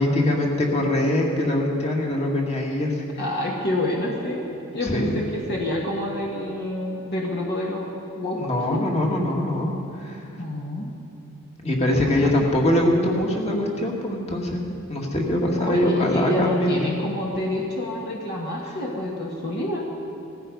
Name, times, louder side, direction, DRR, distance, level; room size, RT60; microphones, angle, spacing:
voice 1, 0.0-3.0 4.8-5.2 8.4-10.2 11.6-14.6 14.9-16.8, left 1 dB, 30° left, 0 dB, 2.1 m, -23 dB
voice 2, 3.2-8.8 10.4-10.9 12.0-12.3 15.6-19.9, left 1 dB, 50° left, -2 dB, 1.5 m, -28 dB
17.5 x 14.5 x 5.4 m, 2.9 s
head